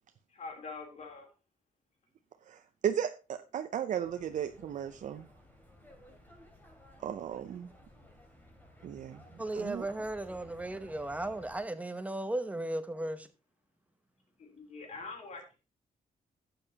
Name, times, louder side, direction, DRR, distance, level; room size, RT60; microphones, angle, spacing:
voice 1, 0.3-1.3 14.4-15.6, left 4 dB, 55° left, 3.4 m, -44 dB
voice 2, 2.5-5.3 7.0-7.7 8.8-9.2 9.5-9.9, right 9 dB, 60° right, 0.6 m, -35 dB
sound 1, 4.0-11.6, left 1 dB, 15° left, 2.8 m, -56 dB
voice 3, 9.4-13.3, right 1 dB, 10° right, 0.9 m, -36 dB
12.0 x 8.9 x 2.9 m
cardioid pair, 135°, 14 cm